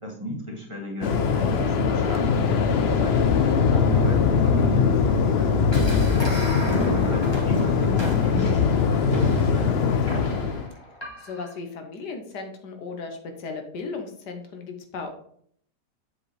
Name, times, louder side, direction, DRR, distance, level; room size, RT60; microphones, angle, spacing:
voice 1, 0.0-5.9 6.6-8.5 8.8-10.1, left 1 dB, 20° right, -2 dB, 1.8 m, -33 dB
Waves surf, 1.0-10.7, left 6 dB, 60° left, 0.7 m, -22 dB
sound 1, 5.7-11.5, left 1 dB, 15° left, 1.5 m, -31 dB
voice 2, 6.6-7.5 11.2-15.1, left 4 dB, 85° left, 5 dB, 1.6 m, -36 dB
7.5 x 4.9 x 3.3 m, 0.63 s
omnidirectional pair, 1.8 m